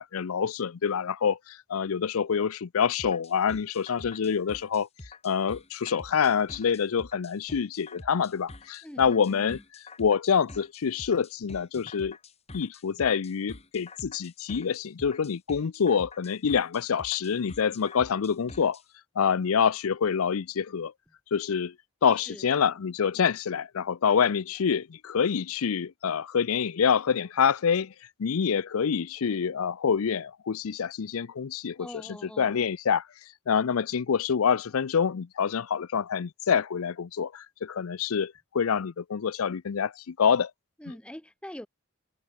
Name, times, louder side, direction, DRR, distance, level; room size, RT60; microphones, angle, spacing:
voice 1, 0.0-4.9 5.2-9.6 10.0-12.2 12.5-18.8 19.2-20.9 21.3-21.7 22.0-27.9 28.2-31.9 32.4-33.0 33.5-40.5, left 7 dB, 85° left, 0.5 m, -26 dB
sound 1, 3.0-18.8, left 2 dB, 30° left, 1.9 m, -47 dB
voice 2, 8.8-9.6 11.8-11.9 22.0-22.5 31.8-32.6 40.8-41.7, equal, 5° left, 0.8 m, -44 dB
head